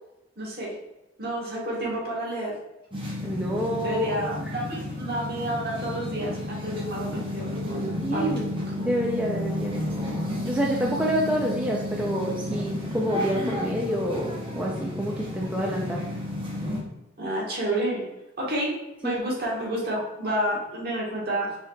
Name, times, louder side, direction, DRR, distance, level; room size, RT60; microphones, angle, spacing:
voice 1, 0.4-0.8 1.2-2.5 3.8-8.3 17.2-18.0 18.4-18.7 19.0-21.6, right 1 dB, 55° right, -3 dB, 1.3 m, -30 dB
sound 1, 2.9-16.8, left 1 dB, 30° right, 0.8 m, -32 dB
voice 2, 3.2-4.1 8.0-8.5 8.8-9.7 10.4-16.0 19.0-19.2, equal, 5° right, -3 dB, 0.4 m, -27 dB
5.4 x 3.0 x 2.3 m, 0.95 s
head